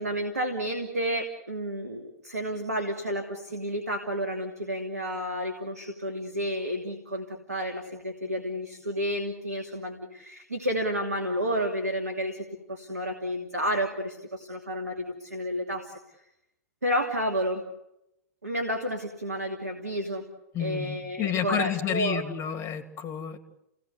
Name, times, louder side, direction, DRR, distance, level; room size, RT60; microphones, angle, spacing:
voice 1, 0.0-16.0 16.8-17.6 18.4-20.2 20.6-22.2, equal, 90° right, 4 dB, 2.8 m, -31 dB
voice 2, 20.5-23.4, left 9 dB, 35° left, 8 dB, 3.1 m, -30 dB
29.5 x 19.0 x 8.2 m, 0.86 s
figure-of-eight pair, 100°, 8 cm